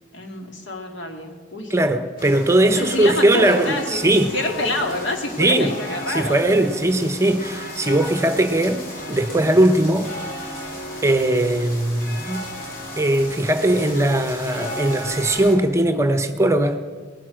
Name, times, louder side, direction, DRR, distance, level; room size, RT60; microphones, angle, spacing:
voice 1, 0.1-1.7 2.8-6.4, left 2 dB, 80° left, 3 dB, 2.1 m, -27 dB
voice 2, 1.7-4.3 5.4-5.7 6.1-10.1 11.0-12.5 13.0-16.8, right 1 dB, 15° right, 8 dB, 0.8 m, -19 dB
sound 1, 2.2-15.5, left 1 dB, 50° left, 3.4 m, -34 dB
19.5 x 9.4 x 6.3 m, 1.5 s
head